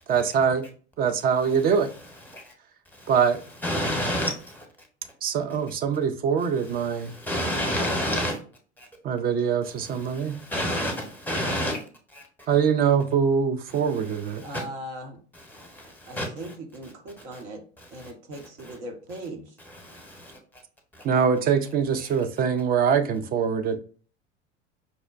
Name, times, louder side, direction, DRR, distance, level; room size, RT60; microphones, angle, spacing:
voice 1, 0.1-0.7 1.0-1.9 3.1-3.4 5.2-7.2 9.0-10.4 12.5-14.4 21.0-23.8, right 7 dB, 30° right, 0.4 m, -23 dB
voice 2, 3.6-4.6 7.1-8.4 10.1-11.8 12.1-12.2 14.4-14.6 15.5-16.5 18.0-18.1 18.6-18.8 19.7-20.4, equal, 5° left, 0.9 m, -29 dB
voice 3, 14.4-15.2 16.1-17.6 17.9-19.4, right 1 dB, 70° right, 1.0 m, -39 dB
5.2 x 2.1 x 2.4 m
hypercardioid pair, 85°, 34 cm